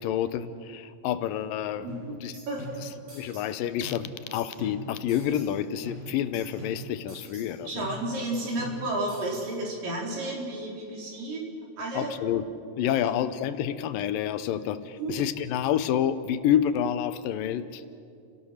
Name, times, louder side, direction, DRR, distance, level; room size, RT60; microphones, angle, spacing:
voice 1, 0.0-2.3 2.8-2.9 3.1-7.9 11.9-12.5 12.8-17.9, left 10 dB, 85° left, 12 dB, 2.5 m, -28 dB
voice 2, 1.8-2.1 2.5-2.9 7.7-12.1 13.0-13.2 15.0-15.1, right 2 dB, 75° right, -1 dB, 5.6 m, -32 dB
sound 1, 1.9-3.6 3.8-5.6 5.8-7.6 7.8-9.6, equal, 50° right, 7.2 m, -43 dB
30.0 x 17.5 x 6.5 m, 2.5 s
omnidirectional pair, 3.9 m